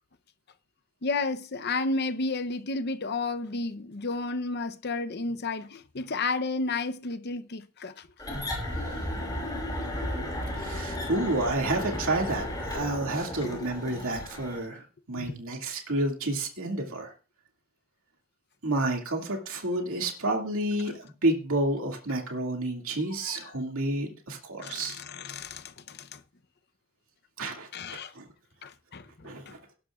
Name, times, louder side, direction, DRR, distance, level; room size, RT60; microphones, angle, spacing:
voice 1, 1.0-8.1 13.4-13.5 15.2-15.3 23.2-23.6 24.6-26.2 27.7-28.1 28.6-29.5, left 3 dB, 50° left, 0.8 m, -32 dB
sound 1, 8.2-14.6, left 1 dB, 20° left, 5.4 m, -34 dB
voice 2, 10.5-17.1 18.6-25.0 27.4-27.7 28.2-28.3 29.2-29.6, right 2 dB, 70° right, 2.3 m, -30 dB
18.5 x 11.5 x 2.4 m
head